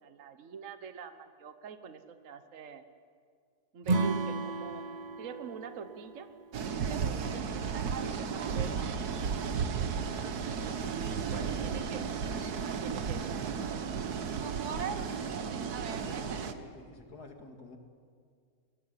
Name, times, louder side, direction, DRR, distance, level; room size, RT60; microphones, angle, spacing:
voice 1, 0.0-2.8 3.7-4.8 5.2-6.3 6.8-9.9 10.9-12.2 12.7-13.7, right 6 dB, 60° right, 9 dB, 1.4 m, -45 dB
Acoustic guitar / Strum, 3.8-7.1, right 3 dB, 40° right, 0.6 m, -34 dB
sound 1, 6.5-16.5, right 6 dB, 85° right, 1.7 m, -34 dB
voice 2, 11.3-11.6 15.8-17.8, left 3 dB, 90° left, 4 dB, 2.7 m, -50 dB
22.5 x 20.0 x 9.8 m, 2.1 s
omnidirectional pair, 1.6 m